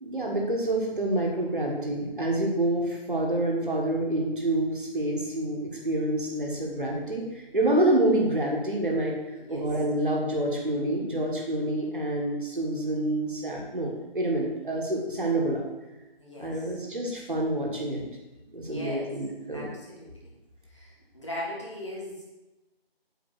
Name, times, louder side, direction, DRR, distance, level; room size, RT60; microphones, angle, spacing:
voice 1, 0.0-15.6 16.4-18.0 18.5-19.7, right 1 dB, 55° right, -1 dB, 1.5 m, -27 dB
voice 2, 16.2-16.7 18.6-19.1 19.5-20.3 20.7-22.2, left 1 dB, 30° left, -5 dB, 1.8 m, -39 dB
8.4 x 3.5 x 6.3 m, 1.1 s
figure-of-eight pair, 170°, 31 cm